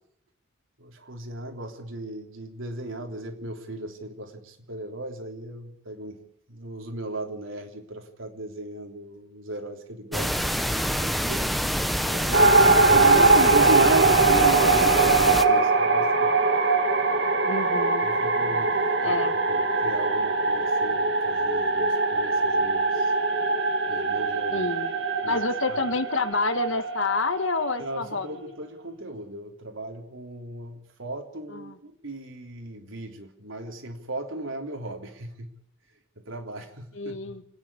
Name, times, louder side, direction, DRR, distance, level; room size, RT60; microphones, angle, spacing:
voice 1, 0.8-6.2 6.5-11.5 12.1-12.5 12.9-16.3 18.0-18.8 19.0-19.2 19.5-23.1 23.9-24.7 25.2-25.8 27.8-35.6 36.2-37.4, right 2 dB, 75° right, 4 dB, 3.4 m, -36 dB
sound 1, 10.1-15.4, equal, ahead, 0.9 m, -26 dB
voice 2, 12.3-13.5 17.4-18.1 19.0-19.3 24.5-24.9 25.3-28.3 31.5-31.8 36.9-37.4, left 3 dB, 70° left, 10 dB, 1.6 m, -29 dB
sound 2, 12.3-28.3, right 3 dB, 55° right, 1.8 m, -22 dB
29.5 x 10.0 x 9.9 m, 0.73 s
head